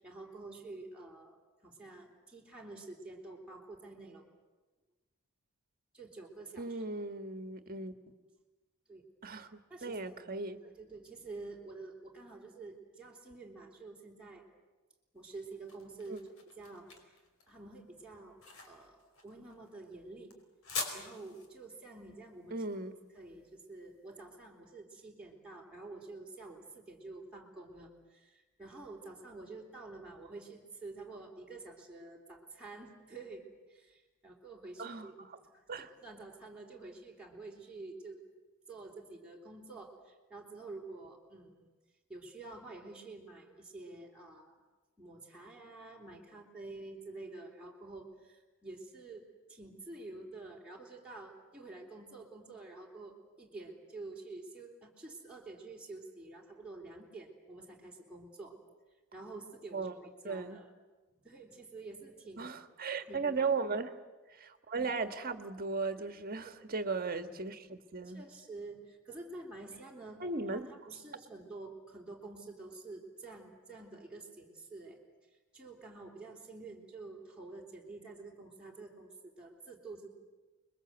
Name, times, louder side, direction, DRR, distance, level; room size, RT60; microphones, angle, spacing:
voice 1, 0.0-1.4 1.6-4.2 5.9-6.8 8.9-9.0 9.7-10.2 10.6-14.5 15.1-16.2 16.6-17.2 17.5-18.4 18.7-20.3 20.9-22.6 23.1-35.1 35.4-38.2 38.7-41.7 42.1-44.6 45.0-58.6 59.1-60.7 61.2-62.5 63.1-63.4 66.4-66.5 68.0-70.2 70.5-75.0 75.5-80.1, right 3 dB, 5° right, -3 dB, 3.6 m, -49 dB
voice 2, 6.6-7.9 9.2-10.6 16.1-16.2 22.5-22.9 34.8-35.4 35.7-35.9 59.7-59.9 60.2-60.6 62.4-63.9 64.3-68.2 70.2-70.7, right 4 dB, 40° right, 9 dB, 1.6 m, -37 dB
sound 1, 15.2-24.2, left 4 dB, 65° left, 4.7 m, -46 dB
29.0 x 22.0 x 8.1 m, 1.2 s
head